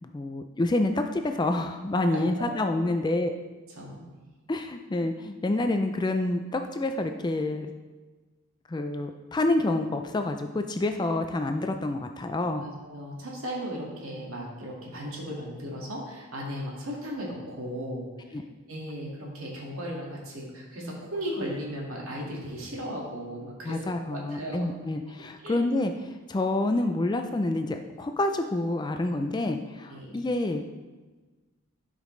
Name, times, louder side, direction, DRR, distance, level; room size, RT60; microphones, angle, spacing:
voice 1, 0.0-3.3 4.5-7.7 8.7-12.6 18.3-18.4 23.6-30.8, left 2 dB, 20° left, 6 dB, 0.3 m, -28 dB
voice 2, 2.6-3.3 3.7-4.1 12.6-24.7 25.1-25.6 29.9-30.2, equal, 70° right, -3 dB, 1.9 m, -36 dB
12.0 x 5.1 x 3.2 m, 1.3 s
head